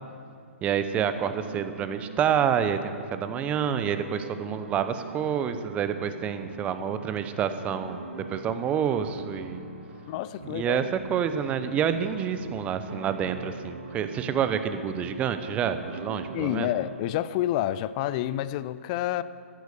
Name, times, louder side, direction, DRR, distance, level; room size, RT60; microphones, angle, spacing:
voice 1, 0.6-9.7 10.4-16.7, right 8 dB, 15° right, 10 dB, 0.7 m, -28 dB
sound 1, 0.9-16.9, right 4 dB, 45° right, 2.5 m, -43 dB
voice 2, 10.1-10.9 16.3-19.2, left 13 dB, 30° left, 15 dB, 0.5 m, -29 dB
14.5 x 11.0 x 6.9 m, 2.3 s
figure-of-eight pair, 130°, 7 cm